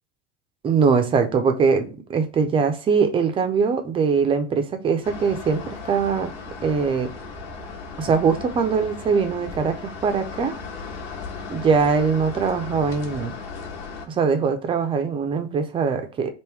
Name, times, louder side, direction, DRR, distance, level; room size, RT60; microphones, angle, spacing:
voice 1, 0.6-6.3 6.6-7.1 8.0-10.5 11.5-13.3 14.1-16.3, right 5 dB, 15° right, 0.4 m, -22 dB
sound 1, 5.0-14.1, left 4 dB, 45° left, 1.2 m, -36 dB
3.5 x 2.6 x 4.5 m
supercardioid pair, 150°, 34 cm